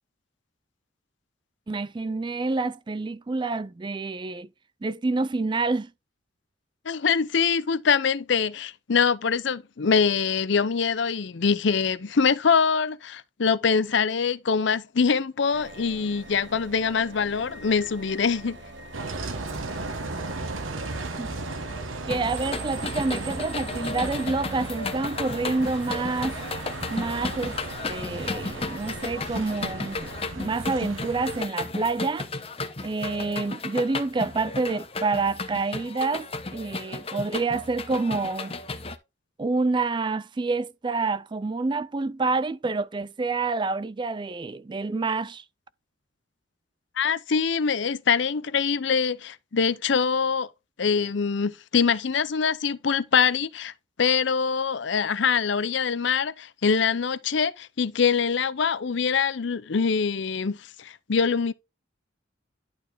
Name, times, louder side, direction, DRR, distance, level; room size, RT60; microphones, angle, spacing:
voice 1, 1.7-4.5 4.8-5.9 21.2-21.4 22.1-26.4 26.9-27.6 27.9-30.1 30.4-32.3 32.8-38.6 39.4-45.4, right 3 dB, 25° right, 0.3 m, -28 dB
voice 2, 6.9-18.6 47.0-50.5 50.8-53.7 54.0-61.5, left 6 dB, 60° left, 0.6 m, -24 dB
sound 1, 15.5-30.2, right 1 dB, 60° right, 1.2 m, -44 dB
Bus, 18.9-31.4, right 3 dB, 80° right, 1.3 m, -36 dB
sound 2, 22.1-39.0, left 3 dB, 30° left, 0.9 m, -34 dB
11.5 x 4.4 x 3.4 m
head